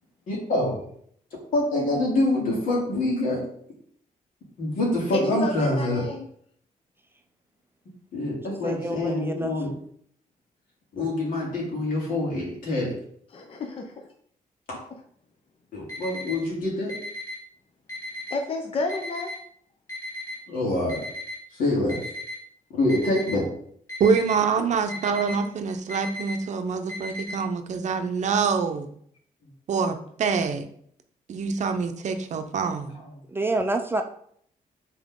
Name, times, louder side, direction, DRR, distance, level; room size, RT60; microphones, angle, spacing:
voice 1, 0.3-0.8 1.5-3.4 4.6-6.0 8.1-9.7 10.9-12.8 15.7-16.9 20.5-21.0 21.5-22.0 22.7-23.5 25.3-25.4, left 1 dB, 75° left, -4 dB, 2.6 m, -25 dB
voice 2, 5.1-6.3 13.3-13.7 18.3-19.3 24.6-24.7, left 3 dB, 40° left, 3 dB, 0.7 m, -30 dB
voice 3, 8.5-9.5 33.3-34.0, right 2 dB, 15° right, 5 dB, 0.4 m, -28 dB
Alarm, 15.9-16.3 16.9-17.3 17.9-18.3 18.9-19.3 19.9-20.3 20.9-21.3 21.9-22.3 22.9-23.3 23.9-24.3 24.9-25.4 25.9-26.3 26.9-27.3, left 1 dB, 20° left, 1.8 m, -35 dB
voice 4, 24.0-28.9 29.7-30.7 31.3-33.0, right 5 dB, 55° right, 7 dB, 0.6 m, -25 dB
6.0 x 4.2 x 3.6 m, 0.63 s
wide cardioid pair, 165°, 14 cm